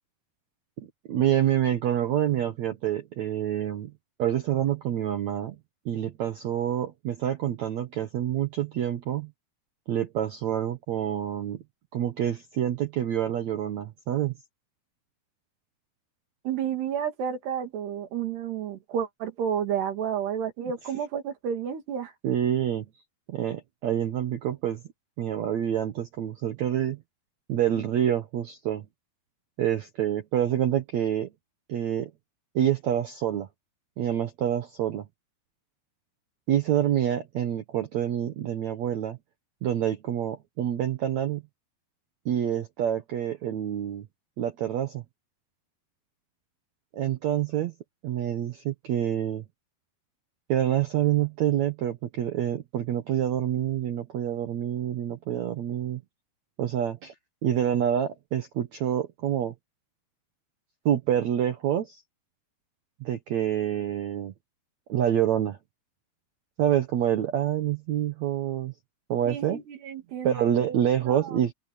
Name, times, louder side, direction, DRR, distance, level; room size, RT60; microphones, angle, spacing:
voice 1, 0.8-3.9 4.2-5.6 5.9-9.3 9.9-11.6 11.9-14.3 22.2-22.9 23.3-24.8 25.2-27.0 27.5-28.9 29.6-31.3 31.7-32.1 32.6-33.5 34.0-35.1 36.5-39.2 39.6-41.4 42.3-44.1 44.4-45.0 46.9-47.7 48.0-49.4 50.5-56.0 56.6-57.1 57.4-59.5 60.9-62.0 63.0-64.3 64.9-65.6 66.6-68.7 69.1-69.6 70.2-71.5, right 10 dB, 65° right, 1.8 m, -27 dB
voice 2, 16.4-22.1 69.3-70.5 71.0-71.4, right 8 dB, 80° right, 4.7 m, -31 dB
open air
omnidirectional pair, 4.6 m